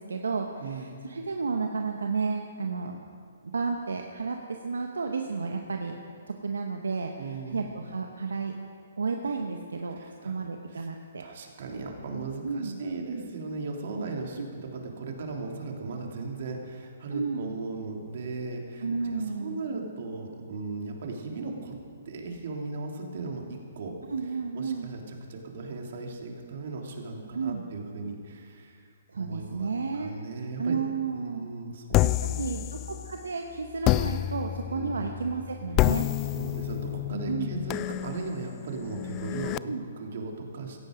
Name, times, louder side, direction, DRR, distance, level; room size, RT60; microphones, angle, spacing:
voice 1, 0.0-3.0 3.4-5.9 6.3-8.6 9.0-11.2 12.4-12.8 14.4-14.5 17.1-17.6 18.8-19.7 24.1-24.9 27.3-27.7 29.1-31.5 32.0-36.1 37.3-37.6 39.7-39.9, right 4 dB, 80° right, 3 dB, 1.2 m, -32 dB
voice 2, 0.6-1.0 7.2-7.6 10.0-10.4 10.7-10.9 11.2-21.8 22.0-23.9 24.5-28.8 29.1-30.8 31.1-32.5 34.7-35.1 35.9-36.0 36.3-40.8, right 3 dB, 60° right, 1 dB, 2.9 m, -37 dB
sound 1, 31.9-33.3 33.8-39.6, left 17 dB, 30° left, 0.3 m, -29 dB
17.0 x 14.5 x 5.2 m, 2.3 s
hypercardioid pair, 135°, 0 cm